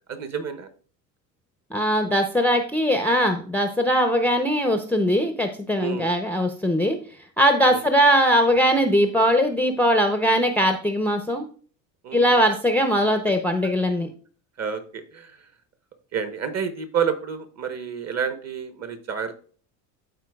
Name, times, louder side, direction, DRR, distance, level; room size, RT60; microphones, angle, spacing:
voice 1, 0.1-0.7 5.8-6.1 7.7-7.8 12.0-12.4 14.6-15.5 16.1-19.3, right 7 dB, 30° right, 9 dB, 1.1 m, -29 dB
voice 2, 1.7-7.0 7.4-11.4 12.1-14.1, equal, 5° left, 6 dB, 0.6 m, -20 dB
12.5 x 4.3 x 2.3 m, 0.43 s
hypercardioid pair, 75°, 50 cm